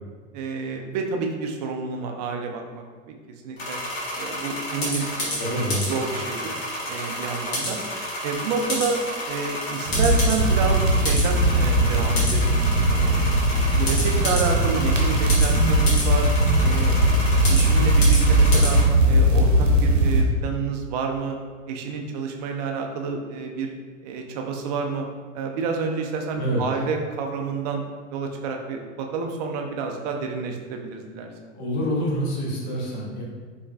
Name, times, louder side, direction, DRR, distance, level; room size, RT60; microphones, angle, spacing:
voice 1, 0.3-3.2 3.4-3.8 4.2-5.5 5.9-6.5 6.9-7.8 8.2-9.0 9.3-12.5 12.9-13.3 13.7-16.3 16.6-17.0 17.5-18.8 19.1-21.4 21.7-23.7 24.0-25.1 25.3-27.8 28.1-31.3, right 5 dB, 35° right, 3 dB, 0.5 m, -29 dB
sound 1, 3.6-18.8, left 1 dB, 50° left, 1.4 m, -30 dB
voice 2, 5.4-5.9 26.4-26.6 31.5-33.2, equal, 35° left, -4 dB, 1.1 m, -26 dB
sound 2, 9.9-20.2, right 1 dB, 75° right, 0.9 m, -19 dB
5.2 x 3.1 x 2.3 m, 1.5 s
figure-of-eight pair, 95°, 38 cm